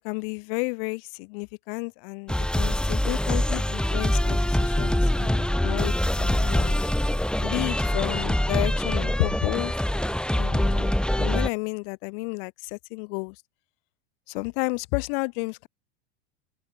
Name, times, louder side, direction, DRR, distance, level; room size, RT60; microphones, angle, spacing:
voice 1, 0.0-6.9 7.4-9.7 10.3-13.4 14.3-15.7, left 34 dB, 55° left, 7.5 m, -31 dB
sound 1, 2.3-11.5, left 1 dB, 5° left, 6.5 m, -24 dB
open air
hypercardioid pair, 95°, 34 cm